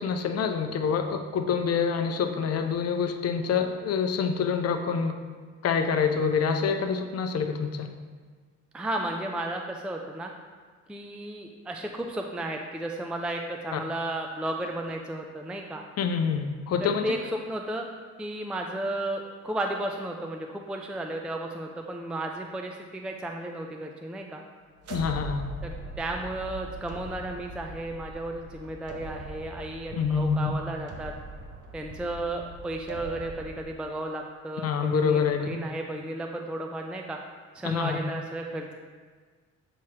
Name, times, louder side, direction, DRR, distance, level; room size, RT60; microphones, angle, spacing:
voice 1, 0.0-5.2 5.6-7.9 13.7-13.8 16.0-17.0 24.9-25.4 30.0-30.5 34.6-35.5 37.6-38.0, left 6 dB, 55° left, 6 dB, 0.6 m, -26 dB
voice 2, 8.7-10.3 10.9-15.8 16.8-17.9 18.2-24.4 25.6-31.1 31.7-37.2 37.5-38.7, right 1 dB, 5° right, 2 dB, 0.4 m, -34 dB
sound 1, 24.7-33.6, right 2 dB, 55° right, 0.8 m, -41 dB
7.3 x 2.9 x 4.6 m, 1.5 s
cardioid pair, 90°, 30 cm